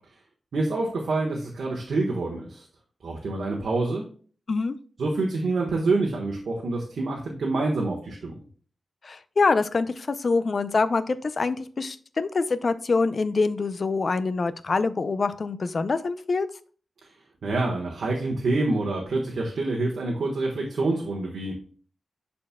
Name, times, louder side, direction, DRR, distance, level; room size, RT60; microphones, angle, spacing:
voice 1, 0.5-2.6 3.0-4.0 5.0-8.4 17.0-17.1 17.4-21.6, right 2 dB, 85° right, -1 dB, 1.3 m, -27 dB
voice 2, 9.0-16.5, left 4 dB, 45° left, 13 dB, 0.4 m, -25 dB
11.5 x 4.3 x 2.2 m, 0.42 s
wide cardioid pair, 150°, 0 cm